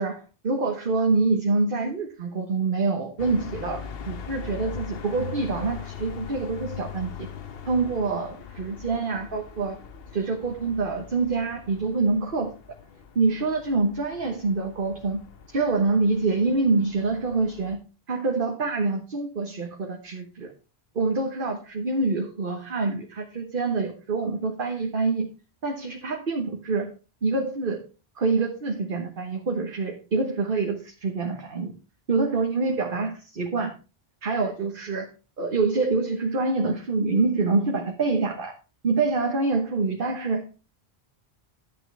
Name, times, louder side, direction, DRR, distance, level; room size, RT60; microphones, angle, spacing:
voice 1, 0.0-7.3 7.7-9.8 10.1-12.5 13.1-15.2 15.5-17.8 18.1-20.5 20.9-25.3 25.6-26.9 27.2-27.8 28.2-31.7 32.1-33.7 34.2-35.1 35.4-38.5 38.8-40.4, right 3 dB, 60° right, 3 dB, 1.4 m, -26 dB
sound 1, 3.2-17.8, left 7 dB, 70° left, 1.0 m, -41 dB
11.0 x 8.6 x 3.3 m, 0.32 s
omnidirectional pair, 1.0 m